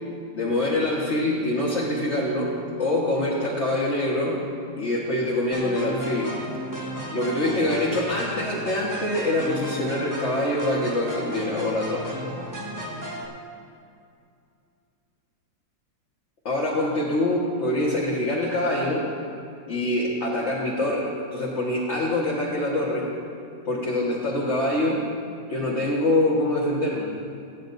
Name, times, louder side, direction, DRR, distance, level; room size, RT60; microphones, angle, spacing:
voice 1, 0.3-2.5 2.8-4.4 4.8-6.3 7.1-12.1 16.4-19.1 19.7-23.1 23.6-25.0 25.5-27.1, left 1 dB, 40° left, -5 dB, 1.6 m, -25 dB
sound 1, 5.5-13.3, equal, 10° right, 1.0 m, -34 dB
21.5 x 9.7 x 2.7 m, 2.4 s
omnidirectional pair, 2.1 m